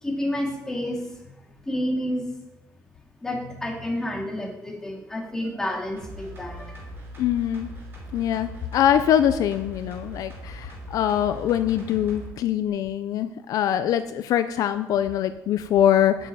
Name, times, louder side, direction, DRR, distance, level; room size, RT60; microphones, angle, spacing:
voice 1, 0.0-1.3 1.6-2.2 3.2-6.9, left 1 dB, 10° left, 0 dB, 2.4 m, -30 dB
sound 1, 6.0-12.3 12.7-12.8, equal, 35° right, 5.0 m, -40 dB
voice 2, 7.2-7.7 8.1-16.3, left 10 dB, 65° left, 10 dB, 0.6 m, -23 dB
9.0 x 7.7 x 9.1 m, 0.92 s
cardioid pair, 160°, 6 cm